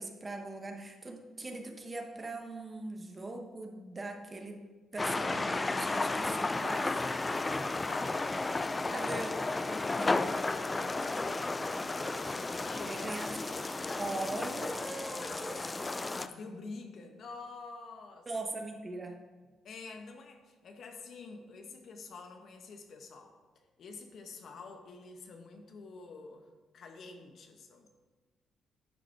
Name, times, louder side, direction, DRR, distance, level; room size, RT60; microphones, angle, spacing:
voice 1, 0.0-4.6 4.9-6.3 6.6-6.9 8.7-9.4 10.0-10.2 12.8-13.5 14.0-15.9 18.3-19.1, right 2 dB, 25° right, 3 dB, 1.1 m, -40 dB
sound 1, 5.0-16.3, left 3 dB, 20° left, 0.4 m, -33 dB
voice 2, 6.6-9.0 9.5-13.0 15.1-15.7 16.1-18.3 19.6-23.4 23.8-27.9, left 4 dB, 60° left, 5 dB, 1.1 m, -48 dB
10.5 x 5.0 x 4.6 m, 1.3 s
cardioid pair, 90°, 0 cm